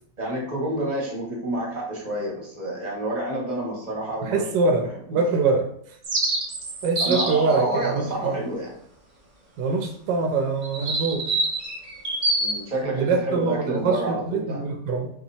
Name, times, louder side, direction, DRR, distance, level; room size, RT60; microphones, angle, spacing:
voice 1, 0.2-5.2 7.0-8.7 12.4-14.6, right 1 dB, 25° right, -2 dB, 1.5 m, -29 dB
voice 2, 4.2-5.7 6.8-8.4 9.6-11.2 12.9-15.1, right 4 dB, 85° right, 4 dB, 1.3 m, -24 dB
sound 1, 6.0-7.5 10.6-12.5, right 2 dB, 45° right, 0.6 m, -25 dB
4.1 x 2.9 x 4.1 m, 0.65 s
omnidirectional pair, 1.9 m